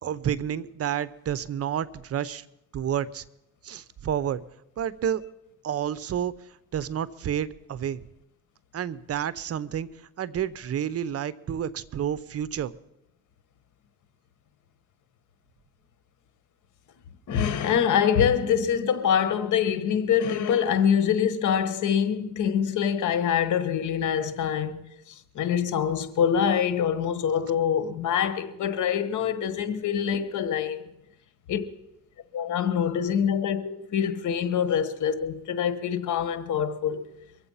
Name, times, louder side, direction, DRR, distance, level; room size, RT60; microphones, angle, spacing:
voice 1, 0.0-2.4 2.7-3.2 3.6-4.4 4.8-5.2 5.6-6.3 6.7-8.0 8.7-9.9 10.2-12.7, right 9 dB, 50° right, 0.7 m, -30 dB
voice 2, 17.3-24.9 25.3-30.8 31.5-31.6 32.3-37.0, left 8 dB, 80° left, 1.3 m, -25 dB
23.5 x 8.0 x 5.6 m
cardioid pair, 90°, 30 cm